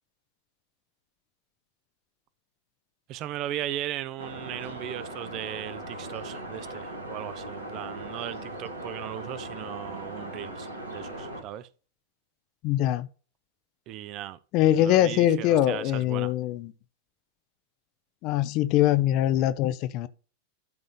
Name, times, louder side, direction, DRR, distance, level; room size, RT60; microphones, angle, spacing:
voice 1, 3.1-11.7 13.9-14.4 14.7-16.3, right 12 dB, 40° right, 0.7 m, -37 dB
sound 1, 4.2-11.4, right 1 dB, 75° right, 2.6 m, -39 dB
voice 2, 12.6-13.1 14.5-16.7 18.2-20.1, left 13 dB, 40° left, 0.7 m, -23 dB
12.0 x 4.0 x 3.7 m
figure-of-eight pair, 90°, 0 cm